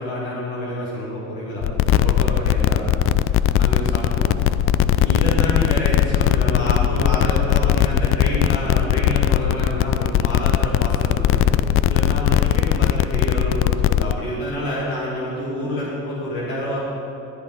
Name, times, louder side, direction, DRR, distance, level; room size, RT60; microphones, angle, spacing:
voice 1, 0.0-2.8 3.6-4.4 5.0-11.4 11.9-16.8, equal, 70° left, -5 dB, 2.6 m, -28 dB
sound 1, 1.6-14.1, left 11 dB, 40° left, 0.4 m, -19 dB
14.0 x 8.3 x 4.2 m, 2.8 s
hypercardioid pair, 75°, 37 cm